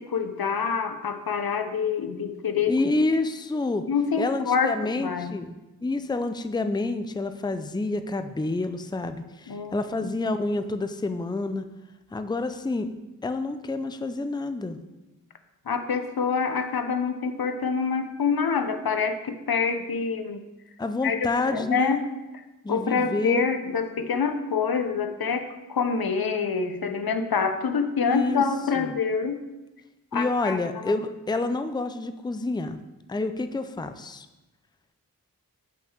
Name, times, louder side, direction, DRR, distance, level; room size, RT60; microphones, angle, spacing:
voice 1, 0.0-2.8 3.9-5.4 9.5-9.8 15.7-20.4 21.0-21.2 21.5-22.0 22.7-29.4 30.1-31.0, left 5 dB, 80° left, 8 dB, 0.9 m, -26 dB
voice 2, 2.7-3.9 4.2-5.6 5.8-11.6 12.1-12.9 13.2-14.8 20.8-22.0 22.6-23.5 28.0-28.4 28.8-28.9 30.1-32.8 33.1-34.3, left 2 dB, 10° left, 9 dB, 0.5 m, -28 dB
6.2 x 5.6 x 7.1 m, 1.0 s
wide cardioid pair, 75°, 36 cm